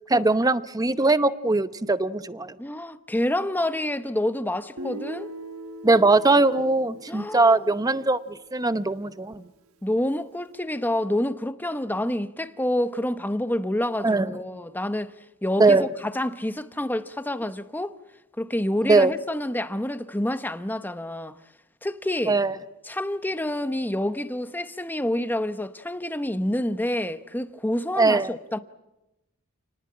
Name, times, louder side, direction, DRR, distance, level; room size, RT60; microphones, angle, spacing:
voice 1, 0.1-2.6 5.8-9.4 14.0-14.3 15.6-15.8 18.8-19.1 22.3-22.6 28.0-28.3, right 3 dB, 15° right, 0.8 m, -21 dB
voice 2, 2.6-5.3 6.9-7.7 9.8-15.1 15.4-18.0 18.4-21.3 21.8-22.4 22.9-28.6, left 1 dB, 10° left, 1.0 m, -28 dB
Guitar, 4.8-8.7, right 1 dB, 75° right, 1.4 m, -41 dB
29.0 x 19.0 x 8.8 m
head